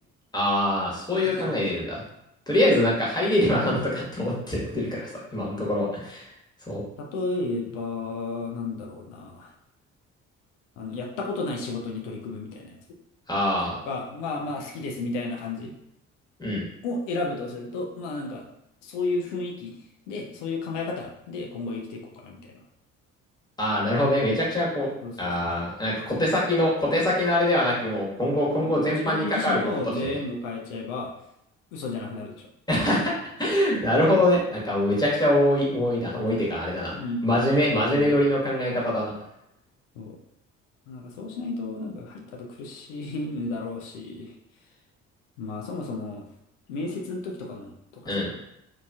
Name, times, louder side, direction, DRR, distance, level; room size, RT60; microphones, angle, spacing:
voice 1, 0.3-2.0 2.5-6.2 6.7-6.8 13.3-13.8 16.4-16.6 23.6-24.9 25.2-29.6 30.0-30.2 32.7-33.1 33.4-37.0 37.2-39.1 48.0-48.3, left 1 dB, 10° left, -5 dB, 1.3 m, -24 dB
voice 2, 1.2-1.7 2.7-2.8 7.0-9.5 10.8-12.8 13.8-15.7 16.8-18.5 18.8-19.7 20.1-22.4 25.0-25.6 28.5-31.1 31.7-32.5 36.9-37.3 37.6-38.2 40.0-40.2 40.9-44.3 45.4-46.3 46.7-48.3, left 3 dB, 85° left, 1 dB, 0.5 m, -33 dB
2.8 x 2.6 x 2.3 m, 0.82 s
hypercardioid pair, 55°, 37 cm